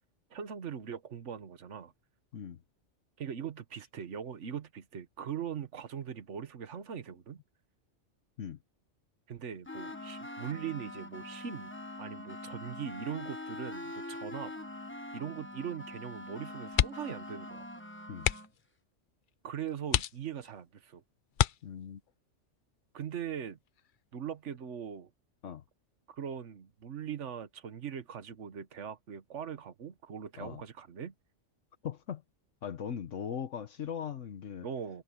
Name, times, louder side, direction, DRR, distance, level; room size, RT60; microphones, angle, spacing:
voice 1, 0.3-1.9 3.2-7.4 9.3-11.7 12.0-14.5 15.1-17.7 19.4-21.0 22.9-23.6 24.1-25.1 26.1-31.1 34.6-35.0, right 8 dB, 70° right, 1.5 m, -40 dB
sound 1, 9.7-18.5, left 1 dB, 10° left, 1.2 m, -44 dB
sound 2, 16.7-17.2 17.5-17.7 18.2-18.7 19.3-19.4 19.9-20.6 21.3-22.1 23.7-24.0 24.3-24.4, left 10 dB, 55° left, 0.6 m, -30 dB
voice 2, 21.6-22.0 25.4-25.6 30.4-30.6 31.8-32.2 32.6-34.7, left 8 dB, 80° left, 1.4 m, -39 dB
omnidirectional pair, 1.3 m